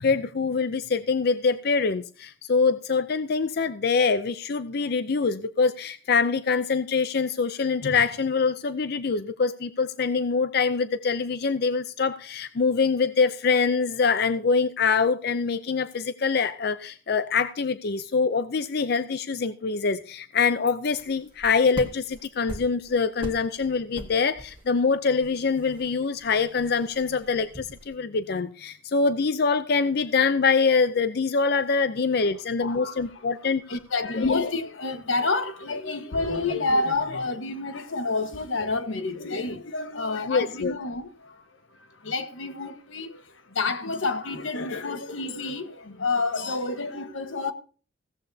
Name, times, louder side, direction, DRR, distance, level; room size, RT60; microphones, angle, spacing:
voice 1, 0.0-33.8 34.2-34.5 40.3-40.7, left 5 dB, 55° left, 0.5 m, -24 dB
sound 1, 20.9-27.9, right 1 dB, 25° right, 1.5 m, -43 dB
voice 2, 32.6-33.0 33.5-41.4 41.7-47.5, left 3 dB, 90° left, 1.4 m, -29 dB
16.0 x 13.5 x 2.8 m
head